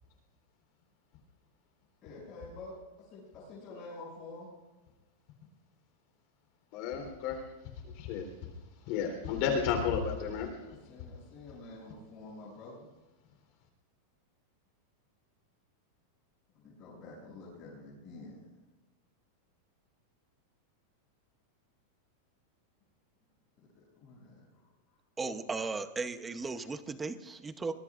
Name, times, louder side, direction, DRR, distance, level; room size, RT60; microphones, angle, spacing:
voice 1, 2.0-4.5 10.5-12.8 16.5-18.5 23.7-25.0, left 2 dB, 25° left, -9 dB, 6.7 m, -49 dB
voice 2, 6.7-7.4 7.9-8.3 8.9-10.5, left 7 dB, 40° left, 4 dB, 3.7 m, -32 dB
voice 3, 25.2-27.7, right 4 dB, 10° right, 9 dB, 0.8 m, -36 dB
25.0 x 21.5 x 2.5 m, 1.2 s
supercardioid pair, 175°, 0 cm